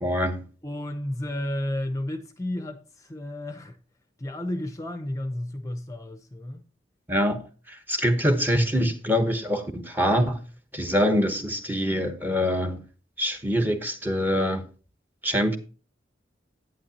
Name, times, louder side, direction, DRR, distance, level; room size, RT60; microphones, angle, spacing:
voice 1, 0.0-0.5 7.1-10.4 10.7-12.8 13.2-14.7 15.2-15.6, equal, 10° right, 1.1 m, -24 dB
voice 2, 0.6-3.8 4.2-6.6, left 1 dB, 20° left, 0.7 m, -32 dB
11.0 x 9.2 x 2.8 m
head